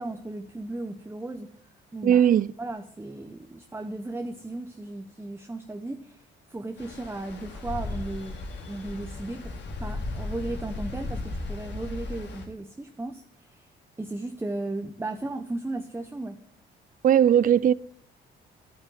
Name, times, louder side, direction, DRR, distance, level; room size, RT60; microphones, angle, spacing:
voice 1, 0.0-1.5 1.9-2.3 2.6-6.2 6.5-8.4 8.7-13.7 14.0-16.4, right 2 dB, 10° right, 1.0 m, -35 dB
voice 2, 2.0-2.5 17.0-17.7, right 9 dB, 45° right, 0.4 m, -18 dB
Stream, 6.8-12.5, left 2 dB, 60° left, 3.4 m, -36 dB
10.5 x 9.8 x 7.7 m
cardioid pair, 90°, 20 cm